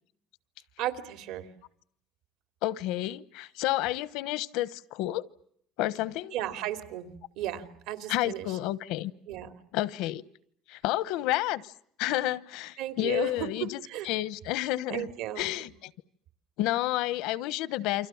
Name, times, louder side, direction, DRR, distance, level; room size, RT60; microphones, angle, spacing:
voice 1, 0.8-1.5 6.3-7.1 7.4-8.6 9.3-9.5 12.8-13.5 13.8-14.1 14.9-15.5, right 12 dB, 75° right, 2.9 m, -35 dB
voice 2, 2.6-5.3 5.8-6.3 8.1-9.1 9.7-10.2 10.7-11.7 12.0-13.8 14.0-15.1 15.4-15.9 16.6-18.1, left 15 dB, 75° left, 1.0 m, -30 dB
29.0 x 25.5 x 7.2 m
cardioid pair, 160°, 0 cm